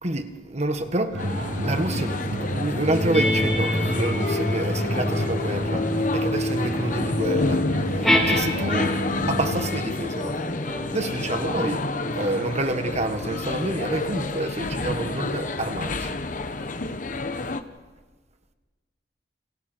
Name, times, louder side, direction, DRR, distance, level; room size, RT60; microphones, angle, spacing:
voice 1, 0.0-1.3 1.6-9.0 9.3-10.4 10.9-11.9 12.1-16.1, right 1 dB, 40° right, 1.7 m, -28 dB
sound 1, 1.1-9.7, equal, 85° right, 6.3 m, -31 dB
sound 2, 1.2-17.6, left 2 dB, 45° left, 1.1 m, -29 dB
sound 3, 2.9-9.3 10.0-14.9, left 1 dB, ahead, 5.4 m, -29 dB
29.5 x 27.0 x 4.6 m
head